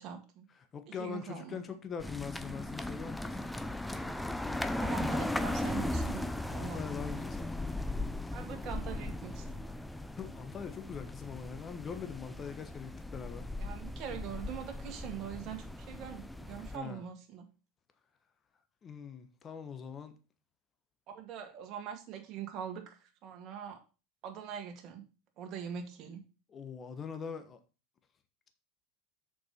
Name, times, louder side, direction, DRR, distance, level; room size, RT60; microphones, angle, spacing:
voice 1, 0.0-0.5 0.9-1.6 4.8-6.8 8.3-9.6 13.6-17.5 21.1-23.8 24.2-25.0 25.4-26.2, right 8 dB, 45° right, 2.2 m, -43 dB
voice 2, 0.6-3.4 6.4-7.5 10.2-13.5 16.7-17.0 18.8-20.2 26.5-27.6, left 7 dB, 30° left, 1.2 m, -42 dB
sound 1, 2.0-16.8, left 1 dB, 5° left, 0.6 m, -37 dB
6.8 x 5.3 x 5.8 m
supercardioid pair, 105°, 0 cm